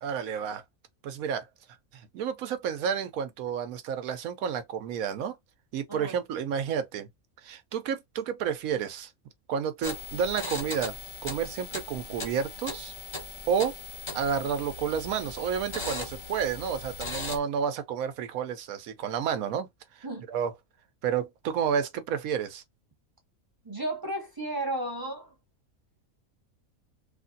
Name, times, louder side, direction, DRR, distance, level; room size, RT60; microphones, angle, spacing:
voice 1, 0.0-0.6 1.0-1.5 1.9-5.4 5.7-7.1 7.4-9.1 9.5-10.9 11.2-12.9 13.5-13.7 14.1-19.7 20.0-20.5 21.0-22.6, right 7 dB, 80° right, 1.1 m, -30 dB
sound 1, 9.8-17.4, left 3 dB, 25° left, 0.8 m, -38 dB
voice 2, 23.6-25.3, right 1 dB, 15° right, 1.0 m, -33 dB
3.2 x 2.5 x 2.6 m
omnidirectional pair, 1.5 m